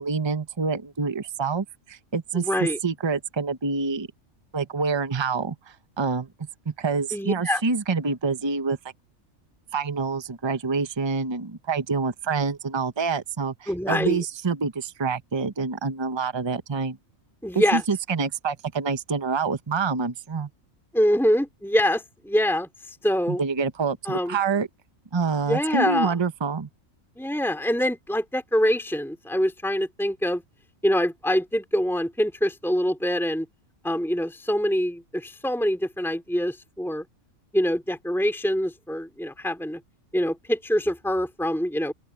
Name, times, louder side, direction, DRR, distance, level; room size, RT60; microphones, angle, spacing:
voice 1, 0.0-2.5 2.8-4.1 4.5-5.6 6.0-6.3 6.7-8.8 9.7-17.0 17.5-20.5 23.3-24.7 25.1-26.7, right 4 dB, 20° right, 0.9 m, -26 dB
voice 2, 2.3-2.8 7.1-7.6 13.7-14.2 17.4-17.8 20.9-23.4 24.0-24.4 25.5-26.1 27.2-30.4 30.8-33.5 33.8-37.0 37.5-39.8 40.1-41.9, equal, ahead, 3.0 m, -25 dB
open air
omnidirectional pair, 1.4 m